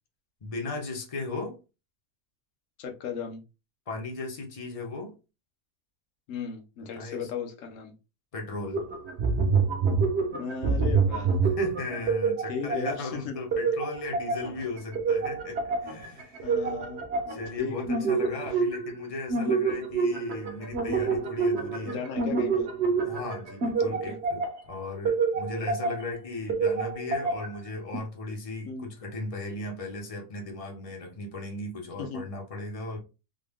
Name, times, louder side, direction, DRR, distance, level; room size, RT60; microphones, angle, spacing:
voice 1, 0.4-1.6 3.9-5.1 6.9-7.3 8.3-8.8 11.4-16.6 17.3-22.0 23.0-33.0, left 3 dB, 30° left, 0.7 m, -36 dB
voice 2, 2.8-3.4 6.3-7.9 10.3-11.4 12.5-13.3 16.4-17.0 17.6-18.1 18.5-18.6 21.9-22.7 23.9-24.2 28.6-28.9 32.0-32.2, left 6 dB, 60° left, 1.0 m, -36 dB
sound 1, 8.7-13.1 13.5-17.5 17.8-19.0 19.3-24.6 25.0-26.1 26.5-27.6 27.9-28.0, right 4 dB, 50° right, 1.0 m, -27 dB
3.8 x 2.2 x 3.5 m
omnidirectional pair, 1.7 m